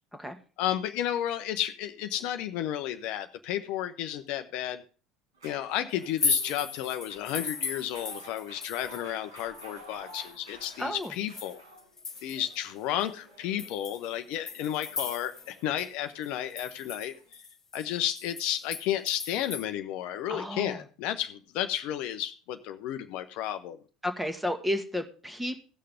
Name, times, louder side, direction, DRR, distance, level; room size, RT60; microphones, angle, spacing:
voice 1, 0.6-4.8 5.4-11.6 12.2-17.1 17.7-23.8, left 11 dB, 55° left, 9 dB, 0.7 m, -32 dB
sound 1, 5.3-17.3, right 1 dB, 75° right, 6.3 m, -52 dB
sound 2, 6.0-9.1 9.4-12.6 13.0-13.1 13.6-15.5 15.8-15.9 16.2-19.6, left 4 dB, 20° left, 0.9 m, -36 dB
voice 2, 10.8-11.1 20.3-20.8 24.0-25.6, left 1 dB, 5° right, 6 dB, 1.5 m, -32 dB
16.5 x 6.6 x 3.6 m, 0.37 s
figure-of-eight pair, 70°, 2 cm